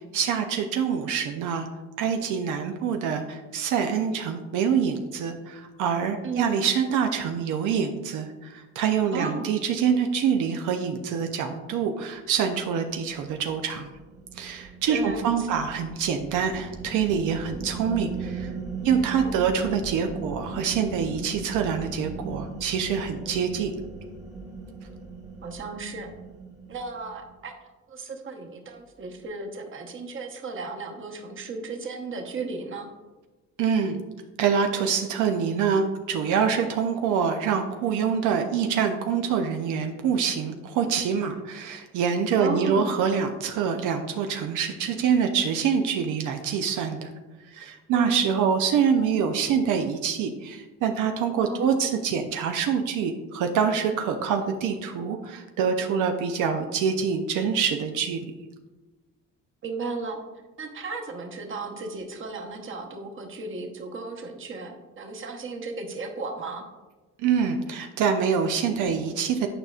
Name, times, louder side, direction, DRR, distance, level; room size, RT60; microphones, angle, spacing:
voice 1, 0.1-1.7 2.0-13.9 14.4-18.5 18.8-23.7 33.6-34.0 34.4-47.1 47.5-58.3 67.2-69.5, right 7 dB, 85° right, 4 dB, 0.6 m, -25 dB
voice 2, 6.2-6.7 9.1-9.5 14.6-15.6 19.2-19.3 25.4-26.1 26.7-27.5 27.9-32.9 42.4-42.9 47.9-48.2 51.4-51.9 59.6-60.2 60.6-66.7, right 3 dB, 40° right, 2 dB, 1.0 m, -35 dB
sound 1, 13.1-27.3, right 4 dB, 10° right, 1.1 m, -38 dB
8.9 x 5.0 x 2.4 m, 1.2 s
cardioid pair, 90°, 30 cm